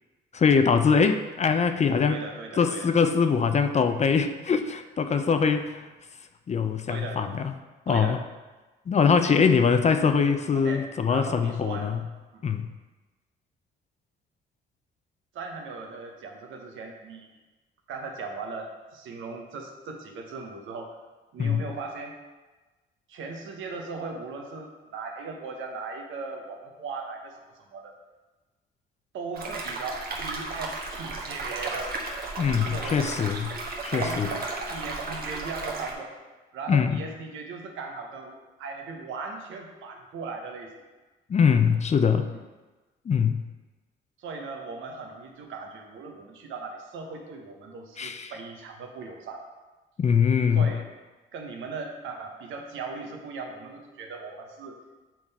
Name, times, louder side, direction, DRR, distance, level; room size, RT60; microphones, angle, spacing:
voice 1, 0.3-2.2 2.6-5.9 6.5-7.5 7.9-8.2 8.9-12.0 12.4-12.7 21.4-21.6 32.4-33.5 33.8-34.3 36.7-37.0 41.3-42.3 43.1-43.4 48.0-48.3 50.0-50.7, left 6 dB, 35° left, 8 dB, 0.5 m, -23 dB
voice 2, 2.1-2.9 6.9-7.2 7.9-8.1 10.5-10.8 11.1-11.9 12.3-12.4 15.3-17.3 17.9-21.0 21.3-22.2 23.1-27.9 29.1-31.9 32.7-33.0 33.9-36.1 36.5-40.8 42.3-42.4 44.2-49.4 50.5-50.8 51.3-54.8, right 4 dB, 80° right, 2 dB, 1.0 m, -38 dB
sound 1, 29.3-35.9, right 3 dB, 50° right, 1.2 m, -34 dB
7.4 x 3.7 x 4.1 m, 1.2 s
cardioid pair, 90°, 20 cm